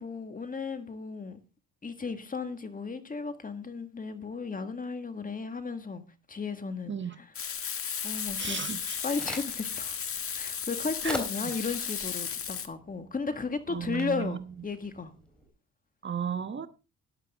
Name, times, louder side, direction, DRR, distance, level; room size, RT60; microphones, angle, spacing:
voice 1, 0.0-1.4 1.8-6.0 6.3-8.6 9.0-10.0 10.3-15.1, left 4 dB, 30° left, 1.8 m, -35 dB
voice 2, 6.9-7.2 8.4-9.0 11.0-11.2 11.4-11.5 13.7-14.4 16.0-16.7, right 7 dB, 40° right, 1.4 m, -34 dB
Frying (food), 7.3-12.7, left 7 dB, 45° left, 1.6 m, -35 dB
Crack, 8.6-15.5, equal, 5° left, 3.9 m, -44 dB
13.5 x 11.0 x 3.6 m
cardioid pair, 90°, 30 cm